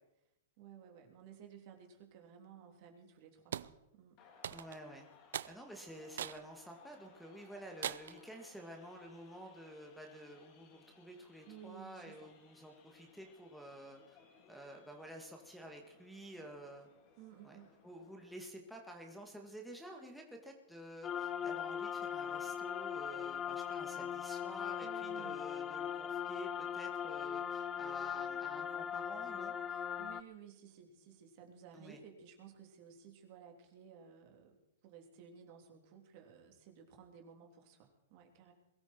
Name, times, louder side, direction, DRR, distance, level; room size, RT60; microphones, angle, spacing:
voice 1, 0.6-4.2 11.5-12.3 17.2-17.8 24.8-25.4 29.7-38.5, right 8 dB, 50° right, 3 dB, 3.3 m, -56 dB
sound 1, 3.5-3.7 4.4-4.9 5.3-5.6 6.2-6.4 6.9-7.0 7.8-8.2, right 10 dB, 75° right, 0.5 m, -40 dB
sound 2, 4.2-18.4, left 6 dB, 45° left, 3.7 m, -65 dB
voice 2, 4.5-5.1 5.5-14.2 14.5-16.9 17.4-17.6 17.8-29.5 31.7-32.0, right 1 dB, ahead, 0 dB, 2.1 m, -51 dB
sound 3, 21.0-30.2, left 8 dB, 25° left, 0.6 m, -39 dB
22.0 x 13.5 x 4.6 m, 0.90 s
hypercardioid pair, 125°, 0 cm